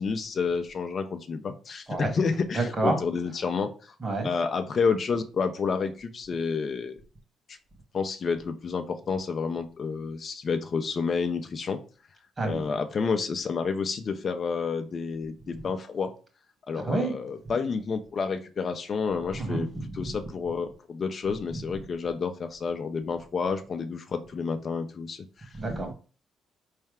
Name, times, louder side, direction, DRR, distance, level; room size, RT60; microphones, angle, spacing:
voice 1, 0.0-3.9 4.2-7.0 7.9-11.8 12.4-16.1 16.7-19.7 19.9-25.5, left 5 dB, 45° left, 0.6 m, -29 dB
voice 2, 2.5-3.0 4.0-4.3 12.4-12.6 16.8-17.1 19.3-20.2 21.5-21.6 25.5-25.9, right 2 dB, 35° right, 1.8 m, -29 dB
4.4 x 3.3 x 3.5 m
cardioid pair, 90°, 0 cm